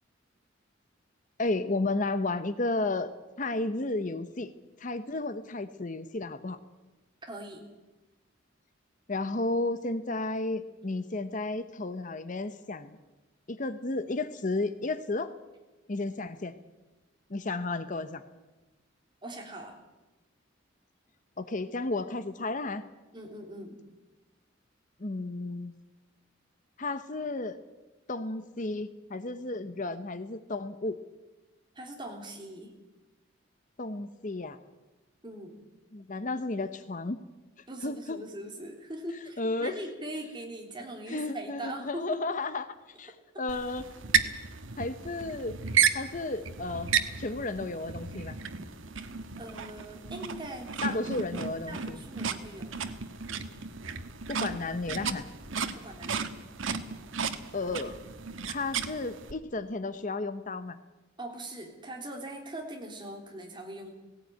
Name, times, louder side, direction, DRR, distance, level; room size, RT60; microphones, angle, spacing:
voice 1, 1.4-3.1 3.4-4.5 4.8-6.6 9.1-13.0 13.5-15.3 15.9-16.5 17.3-18.2 21.4-22.8 25.0-25.7 26.8-27.6 28.1-31.0 33.8-34.6 35.9-37.2 37.8-38.2 39.4-39.7 41.1-42.7 43.0-43.8 44.8-45.6 45.9-48.4 50.8-52.0 54.3-55.3 57.5-58.0 58.5-60.8, left 2 dB, 40° left, 11 dB, 0.9 m, -33 dB
voice 2, 7.3-7.6 19.2-19.8 23.1-23.8 31.8-32.7 35.2-35.6 37.7-42.2 44.7-44.8 49.4-51.0 51.4-52.7 55.5-56.3 61.2-63.9, right 1 dB, 25° right, 2 dB, 3.5 m, -41 dB
sound 1, 43.5-59.3, right 7 dB, 85° right, 1.3 m, -33 dB
17.5 x 17.0 x 9.5 m, 1.1 s
head